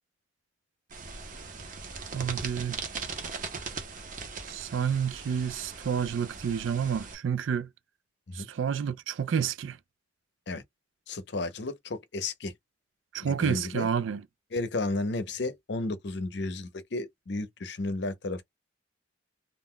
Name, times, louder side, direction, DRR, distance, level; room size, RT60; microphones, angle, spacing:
sound 1, 0.9-7.1, right 4 dB, 45° right, 0.8 m, -39 dB
voice 1, 2.1-2.8 4.5-7.7 8.3-9.8 13.1-14.2, right 7 dB, 80° right, 0.4 m, -29 dB
voice 2, 11.1-12.5 13.2-13.9 14.5-18.4, left 2 dB, 60° left, 0.6 m, -33 dB
2.4 x 2.2 x 3.6 m
head